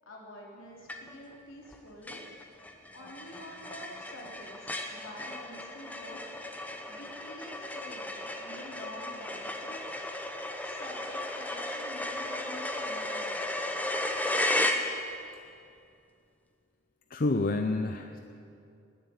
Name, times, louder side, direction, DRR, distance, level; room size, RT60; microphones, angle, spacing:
voice 1, 0.0-2.2 2.9-6.2 6.9-10.1 10.6-13.6, left 1 dB, 70° left, -2 dB, 3.3 m, -47 dB
sound 1, 0.9-1.3 1.7-1.8 2.1-15.3, left 1 dB, 5° left, 0.8 m, -35 dB
voice 2, 17.1-18.2, left 2 dB, 40° left, 6 dB, 0.5 m, -28 dB
19.5 x 7.3 x 8.9 m, 2.5 s
head